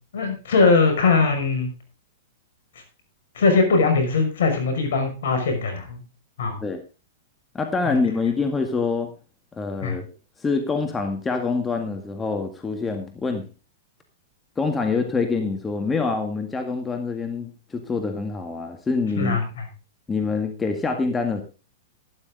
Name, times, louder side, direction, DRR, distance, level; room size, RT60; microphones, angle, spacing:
voice 1, 0.1-1.7 3.4-6.0 6.4-6.6 7.8-8.0 9.8-10.0 19.2-19.6, left 4 dB, 70° left, 6 dB, 5.9 m, -20 dB
voice 2, 7.5-9.1 9.5-10.1 10.4-13.5 14.6-19.4 20.1-21.4, left 4 dB, 15° left, 5 dB, 1.9 m, -25 dB
12.5 x 12.0 x 3.9 m, 0.32 s
hypercardioid pair, 125°, 0 cm